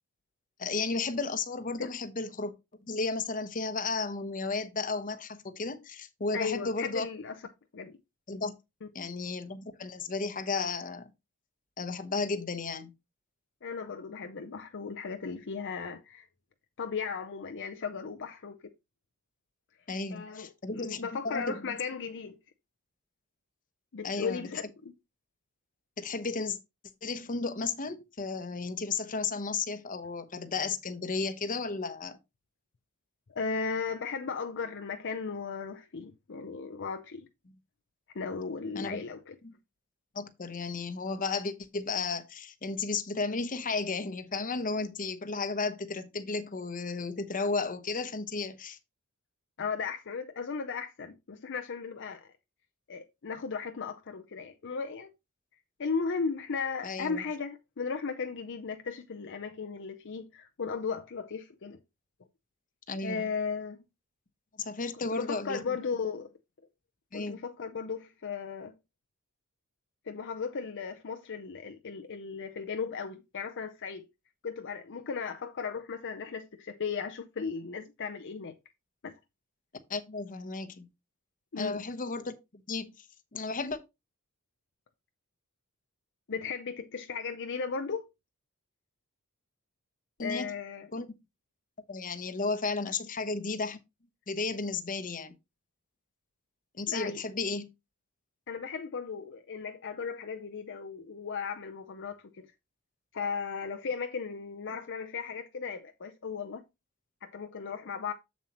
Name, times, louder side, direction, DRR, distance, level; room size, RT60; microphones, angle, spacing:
voice 1, 0.6-2.5 2.9-7.1 8.3-8.5 8.9-11.1 11.8-12.9 19.9-21.8 24.0-24.4 26.0-26.6 27.0-32.2 38.7-39.0 39.4-39.5 40.1-48.8 56.8-57.2 62.9-63.3 64.6-65.8 67.1-67.4 79.9-80.9 81.6-83.1 83.3-83.8 90.2-90.5 90.9-91.1 91.9-93.8 94.3-95.4 96.7-97.7, left 4 dB, 40° left, 0.9 m, -34 dB
voice 2, 6.3-7.4 7.7-8.0 8.8-8.9 13.6-16.3 16.8-18.6 20.1-22.4 23.9-24.9 33.3-37.3 38.1-39.4 49.6-52.3 52.9-55.1 55.8-61.8 63.0-63.8 65.1-66.3 67.1-68.7 70.1-74.0 74.4-78.5 79.0-79.1 81.5-81.8 86.3-88.1 90.2-90.9 96.9-97.2 98.5-102.5 103.1-106.6 107.2-108.1, left 5 dB, 55° left, 0.6 m, -36 dB
7.3 x 7.2 x 3.0 m
head